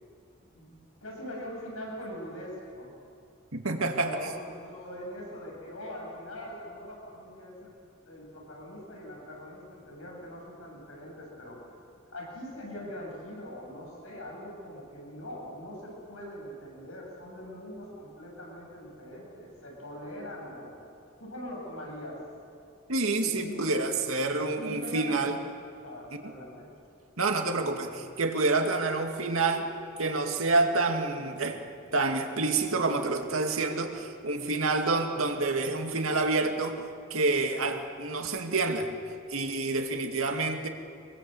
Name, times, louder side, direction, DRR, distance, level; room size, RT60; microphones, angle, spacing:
voice 1, 1.0-2.9 3.9-7.7 8.1-11.7 12.1-20.7 21.2-22.2 23.2-23.7 24.6-25.4 25.8-26.7, left 1 dB, 80° left, -2 dB, 7.5 m, -42 dB
voice 2, 3.5-4.2 22.9-25.4 27.2-29.7 30.0-31.6 31.9-38.9 39.3-40.7, right 3 dB, 85° right, 4 dB, 2.3 m, -28 dB
25.0 x 22.0 x 8.0 m, 2.4 s
head